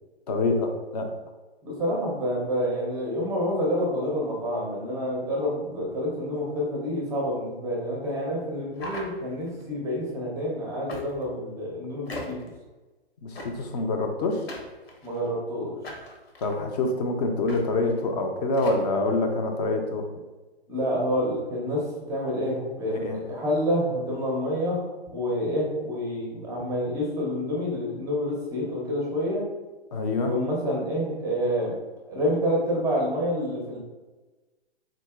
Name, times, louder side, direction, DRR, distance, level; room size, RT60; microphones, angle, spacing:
voice 1, 0.3-1.1 13.2-14.5 16.4-20.1 22.9-23.2 29.9-30.3, left 2 dB, 40° left, 4 dB, 0.5 m, -26 dB
voice 2, 1.6-12.4 15.0-15.7 20.7-24.8 25.1-29.4 30.2-31.8 32.1-33.8, equal, 10° right, -2 dB, 0.5 m, -28 dB
sound 1, 8.7-9.6 10.9-11.4 12.1-12.6 13.4-13.8 14.5-15.3 15.8-16.6 17.5-17.6 17.9-18.0 18.5-18.8, left 1 dB, 70° left, 0.9 m, -39 dB
3.9 x 2.6 x 2.3 m, 1.2 s
figure-of-eight pair, 125°, 32 cm